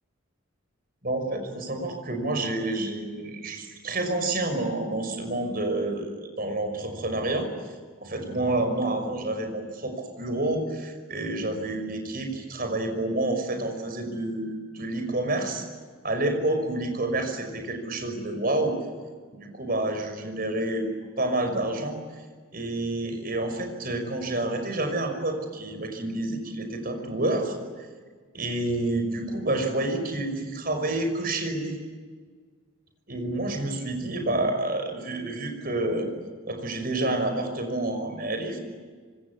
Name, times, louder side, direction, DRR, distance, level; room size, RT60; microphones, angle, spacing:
voice 1, 1.0-7.5 8.0-15.6 16.0-18.8 19.3-20.9 21.2-22.0 22.5-27.9 28.3-31.8 33.1-36.1 36.5-38.6, right 2 dB, 45° right, 6 dB, 5.7 m, -29 dB
26.0 x 25.5 x 8.4 m, 1.5 s
head